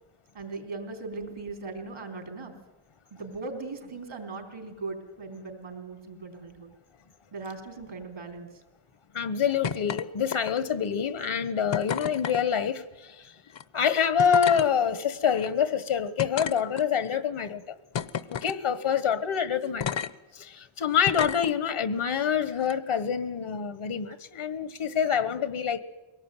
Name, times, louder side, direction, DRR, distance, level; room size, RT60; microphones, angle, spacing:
voice 1, 0.3-2.6 3.1-6.7 7.3-8.6, right 3 dB, 75° right, 4 dB, 4.1 m, -39 dB
voice 2, 9.1-13.3 13.7-17.7 18.3-20.0 20.3-25.8, left 7 dB, 85° left, 14 dB, 1.5 m, -26 dB
sound 1, 9.6-10.0 10.3-10.8 11.7-12.4 13.5-13.6 14.2-14.7 15.4-15.5 16.2-17.1 17.9-18.6 19.8-20.1 21.0-21.5 22.6-22.7, left 8 dB, 65° left, 0.8 m, -32 dB
22.5 x 18.0 x 9.2 m, 1.1 s
wide cardioid pair, 80°, 48 cm